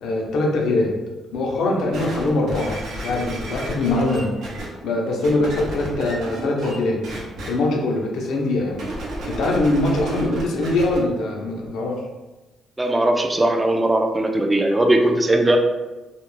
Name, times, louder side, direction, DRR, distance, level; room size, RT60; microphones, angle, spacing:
voice 1, 0.0-0.9 1.3-4.3 4.8-7.0 7.5-8.8 9.3-11.9, left 2 dB, 80° left, -1 dB, 0.5 m, -22 dB
sound 1, 1.9-4.7 5.2-6.8 7.0-7.5 8.7-11.0 11.7-11.8, right 1 dB, 85° right, 0.6 m, -32 dB
voice 2, 12.8-15.6, right 1 dB, 15° right, 3 dB, 0.3 m, -19 dB
2.3 x 2.0 x 3.0 m, 1.1 s
cardioid pair, 90°, 0 cm